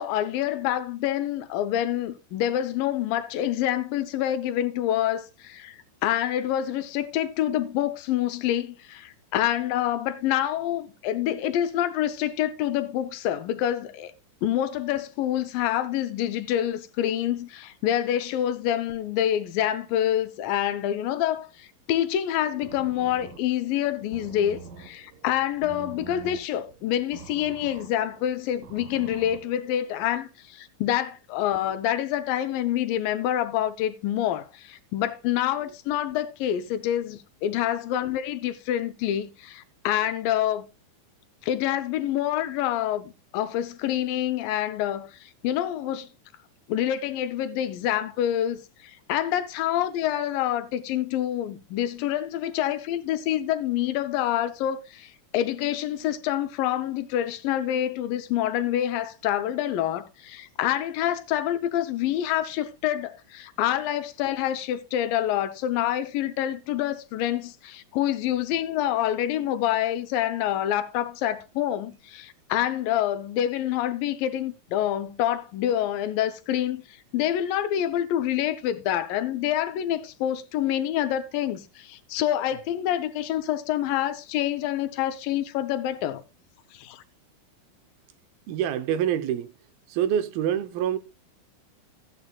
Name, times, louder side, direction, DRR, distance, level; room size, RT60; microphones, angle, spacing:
voice 1, 0.0-14.1 14.4-40.7 41.4-46.1 46.7-76.8 77.1-86.2 86.7-87.0, left 11 dB, 80° left, 2.3 m, -27 dB
sound 1, 22.5-30.0, right 5 dB, 70° right, 2.6 m, -46 dB
voice 2, 88.5-89.5 89.9-91.0, right 10 dB, 90° right, 2.7 m, -26 dB
14.0 x 8.7 x 2.3 m
omnidirectional pair, 4.2 m